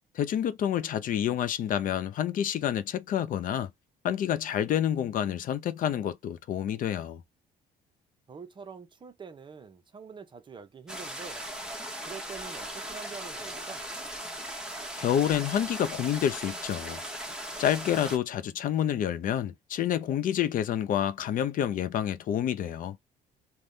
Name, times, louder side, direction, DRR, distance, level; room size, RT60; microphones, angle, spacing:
voice 1, 0.1-3.7 4.0-7.2 15.0-17.0 17.6-23.0, left 10 dB, 55° left, 0.5 m, -28 dB
voice 2, 8.3-11.5 12.0-13.8, right 5 dB, 30° right, 0.6 m, -45 dB
sound 1, 10.9-18.2, right 1 dB, 5° right, 0.9 m, -38 dB
3.4 x 2.2 x 2.6 m
cardioid pair, 110°, 17 cm